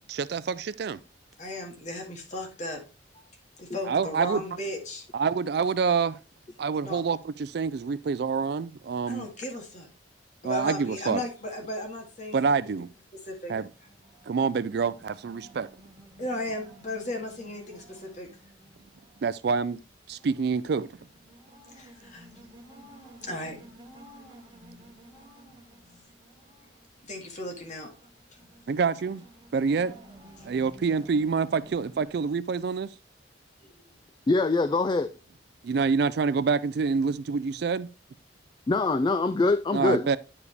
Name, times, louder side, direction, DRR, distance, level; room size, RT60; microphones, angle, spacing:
voice 1, 0.1-1.0 3.9-4.4 5.1-6.2 6.6-9.3 10.4-11.2 12.3-12.9 13.5-13.7 14.3-15.7 19.2-19.8 20.1-21.0 28.7-29.2 29.5-29.9 30.4-32.9 35.6-37.9 39.7-40.2, right 5 dB, 60° right, 0.4 m, -27 dB
voice 2, 1.4-2.8 3.6-5.1 6.8-7.0 9.1-9.9 10.4-12.6 13.2-13.5 16.2-18.3 21.7-22.3 23.2-23.6 27.0-27.9 33.6-33.7, left 1 dB, 40° left, 1.8 m, -35 dB
sound 1, 13.2-32.1, right 1 dB, 25° right, 1.9 m, -53 dB
voice 3, 34.3-35.1 38.7-40.1, left 3 dB, 25° left, 0.3 m, -24 dB
9.6 x 4.9 x 3.3 m
head